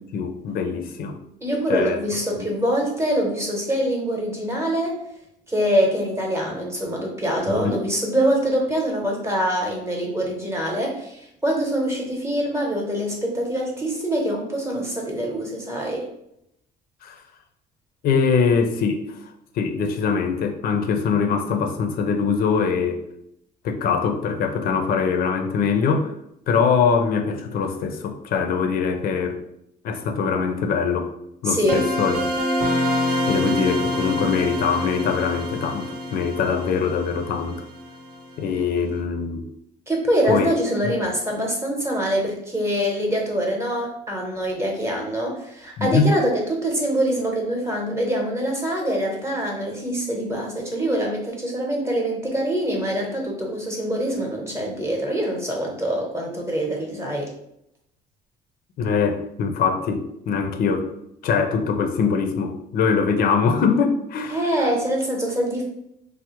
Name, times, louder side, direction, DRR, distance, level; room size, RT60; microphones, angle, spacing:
voice 1, 0.1-1.2 1.7-2.0 2.4-2.5 7.5-7.8 17.0-17.2 18.0-23.0 23.6-26.1 26.5-29.4 29.8-31.1 31.4-32.2 33.3-37.6 38.4-39.5 40.3-40.5 45.8-46.1 58.8-61.0 61.2-64.7, left 5 dB, 60° left, 5 dB, 0.5 m, -23 dB
voice 2, 1.4-5.0 5.5-16.1 31.4-31.9 39.9-57.3 64.3-65.6, right 1 dB, 15° right, -1 dB, 0.8 m, -24 dB
sound 1, 31.7-38.4, left 1 dB, 60° right, 0.8 m, -26 dB
3.3 x 2.1 x 2.9 m, 0.78 s
cardioid pair, 110°, 17 cm